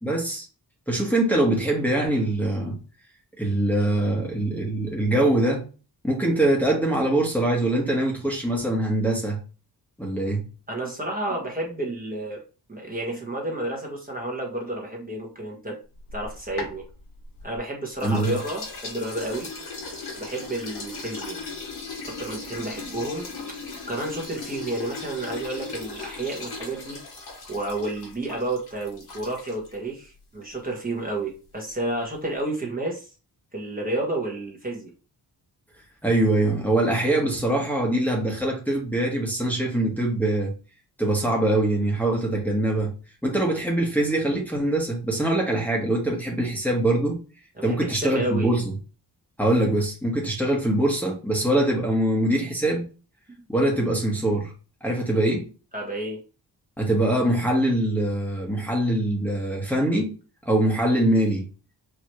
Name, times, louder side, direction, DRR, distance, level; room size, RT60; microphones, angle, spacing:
voice 1, 0.0-0.4 0.9-2.8 3.4-5.6 6.0-9.4 10.0-10.5 18.0-18.3 36.0-40.5 41.0-42.9 43.2-47.2 47.6-48.6 49.4-52.8 53.5-54.5 54.8-55.5 56.8-60.1 60.4-61.5, right 1 dB, 5° left, 1.4 m, -23 dB
voice 2, 10.7-12.4 12.7-15.8 16.1-16.8 17.4-19.5 20.1-21.4 22.1-23.3 23.9-27.0 27.5-33.1 33.5-34.9 47.6-48.6 55.7-56.2, right 2 dB, 20° right, 1.4 m, -31 dB
sound 1, 16.0-17.6 18.0-29.7, left 3 dB, 65° left, 2.2 m, -37 dB
4.8 x 3.0 x 3.1 m
cardioid pair, 90°, 41 cm